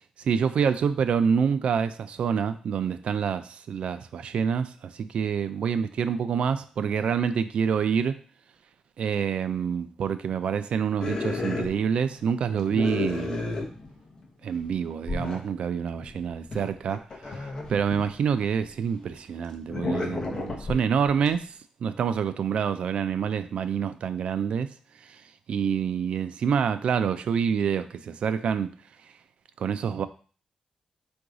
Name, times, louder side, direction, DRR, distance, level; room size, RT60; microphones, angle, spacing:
voice 1, 0.2-8.2 9.0-13.4 14.4-17.0 17.4-21.5 21.8-24.7 25.1-25.2 25.5-28.7 29.6-30.1, right 7 dB, 65° right, 0.4 m, -27 dB
sound 1, 11.0-12.2 12.5-14.2 14.6-14.7 15.1-15.4 15.9-18.7 19.4-21.4, left 3 dB, 35° left, 0.8 m, -32 dB
3.9 x 2.6 x 4.7 m
wide cardioid pair, 140°, 2 cm